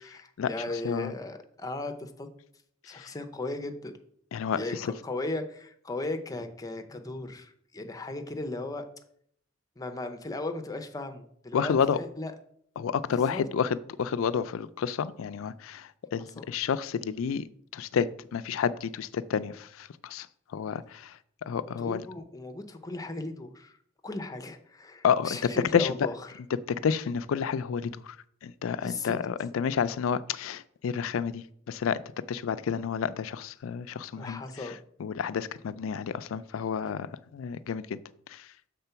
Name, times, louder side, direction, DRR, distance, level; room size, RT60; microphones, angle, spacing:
voice 1, 0.0-2.3 2.8-3.9 4.6-8.8 9.8-12.3 13.1-13.5 16.2-16.5 21.8-23.8 24.0-26.4 28.8-29.2 34.2-34.8 36.8-36.9, left 2 dB, 20° left, 6 dB, 0.6 m, -36 dB
voice 2, 4.3-4.9 11.5-12.0 12.8-20.3 20.5-22.0 25.0-25.4 25.7-25.9 26.7-28.2 28.4-32.0 32.3-34.7 35.0-38.0 38.3-38.5, left 7 dB, 80° left, 14 dB, 0.4 m, -30 dB
6.8 x 3.7 x 5.7 m, 0.66 s
head